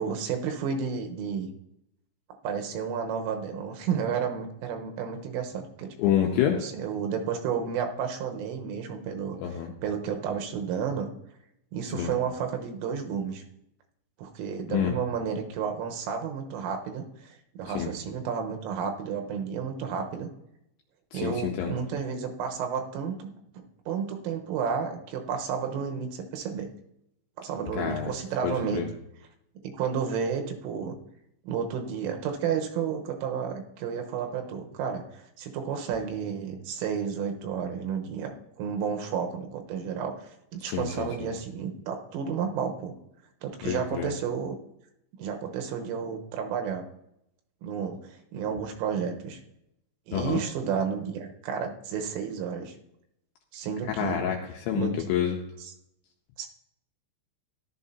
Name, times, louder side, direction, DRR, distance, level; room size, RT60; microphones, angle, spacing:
voice 1, 0.0-1.5 2.4-5.9 6.5-9.4 9.8-11.1 11.7-13.4 14.2-20.3 21.1-23.3 23.9-26.7 27.4-28.8 29.6-31.0 31.5-42.9 43.4-44.6 45.2-46.8 47.6-49.4 50.1-52.8 53.5-54.2 54.7-54.9 55.6-55.7 56.4-56.5, right 7 dB, 90° right, 3 dB, 3.7 m, -31 dB
voice 2, 6.0-6.6 9.4-9.7 11.9-12.1 14.7-15.0 17.8-17.9 21.1-21.7 27.7-28.1 28.4-28.9 40.6-41.1 43.6-44.1 50.1-50.4 54.0-55.4, left 9 dB, 75° left, 1 dB, 2.8 m, -28 dB
14.0 x 12.0 x 2.8 m, 0.81 s
omnidirectional pair, 5.8 m